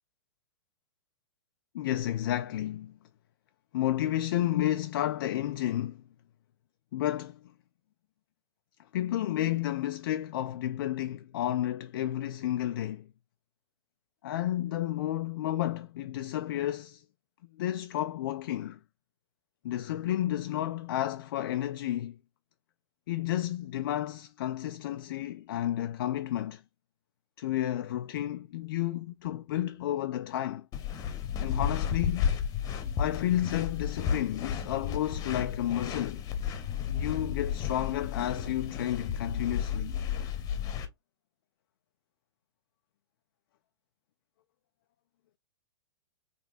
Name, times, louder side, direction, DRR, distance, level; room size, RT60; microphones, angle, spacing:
voice 1, 1.7-2.9 3.7-6.0 6.9-7.4 8.9-13.1 14.2-17.0 17.6-18.8 19.6-22.2 23.1-26.6 27.4-30.7 31.4-32.3 33.0-36.2 36.9-39.9, left 13 dB, 50° left, 0.4 m, -31 dB
sound 1, 30.7-40.9, left 8 dB, 25° left, 1.1 m, -32 dB
3.8 x 3.3 x 2.5 m
figure-of-eight pair, 105°, 14 cm